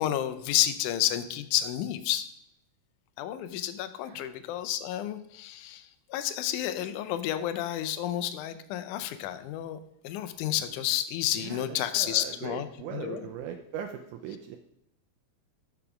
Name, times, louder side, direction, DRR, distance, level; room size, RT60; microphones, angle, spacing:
voice 1, 0.0-2.3 3.2-9.8 10.0-12.7 12.9-13.2, left 12 dB, 80° left, 11 dB, 2.0 m, -30 dB
voice 2, 11.3-14.6, right 8 dB, 80° right, 5 dB, 2.0 m, -40 dB
7.0 x 6.9 x 4.9 m, 0.76 s
omnidirectional pair, 3.8 m